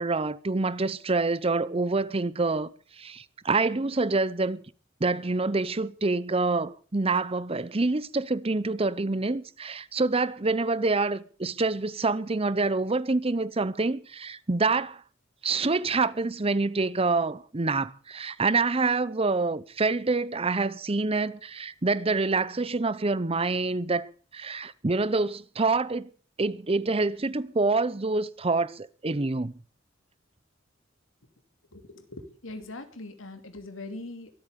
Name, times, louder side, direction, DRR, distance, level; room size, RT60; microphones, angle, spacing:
voice 1, 0.0-2.7 3.0-4.6 5.0-15.0 15.4-26.1 26.4-29.5, right 3 dB, 30° right, 0.7 m, -26 dB
voice 2, 31.7-34.3, left 2 dB, 90° left, 2.8 m, -41 dB
23.0 x 8.7 x 6.8 m
head